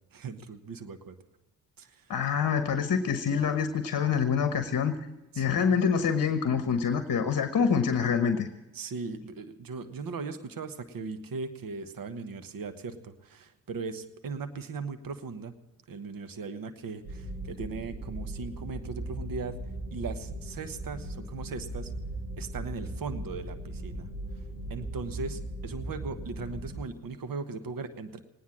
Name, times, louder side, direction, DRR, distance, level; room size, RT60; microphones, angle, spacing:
voice 1, 0.1-1.2 1.8-2.1 5.3-5.6 8.7-15.5 15.9-19.6 19.9-21.9 22.4-24.1 24.7-28.2, right 4 dB, 45° right, 11 dB, 1.3 m, -38 dB
voice 2, 2.1-5.0 5.4-8.5, left 6 dB, 45° left, 9 dB, 1.1 m, -26 dB
sound 1, 17.0-26.8, right 1 dB, 70° right, 4.3 m, -38 dB
19.0 x 9.5 x 7.3 m, 1.0 s
hypercardioid pair, 45°, 47 cm